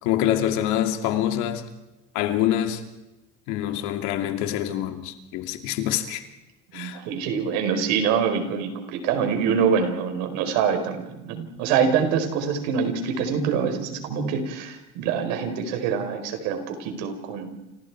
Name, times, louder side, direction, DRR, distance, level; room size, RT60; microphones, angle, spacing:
voice 1, 0.0-1.6 2.1-2.8 3.5-6.3 6.7-7.0, left 11 dB, 75° left, 2.7 m, -25 dB
voice 2, 6.7-17.7, right 6 dB, 85° right, 4.8 m, -25 dB
29.5 x 28.0 x 4.8 m
cardioid pair, 170°, 29 cm